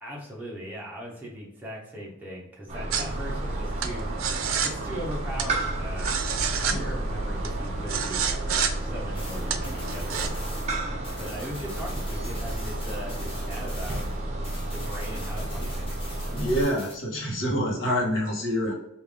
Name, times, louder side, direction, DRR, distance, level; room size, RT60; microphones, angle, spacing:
voice 1, 0.0-4.1 4.6-6.2 6.6-8.2 8.8-10.5 11.2-14.0 14.5-16.0, equal, 10° right, -5 dB, 0.9 m, -39 dB
sound 1, 2.7-16.6, right 1 dB, 30° right, 0.6 m, -32 dB
sound 2, 2.9-10.3, right 6 dB, 80° right, 0.4 m, -31 dB
sound 3, 9.1-14.2 14.4-16.9, left 1 dB, 25° left, 0.7 m, -44 dB
voice 2, 16.3-18.7, equal, 65° left, -2 dB, 1.1 m, -27 dB
3.4 x 2.6 x 3.4 m, 0.84 s
head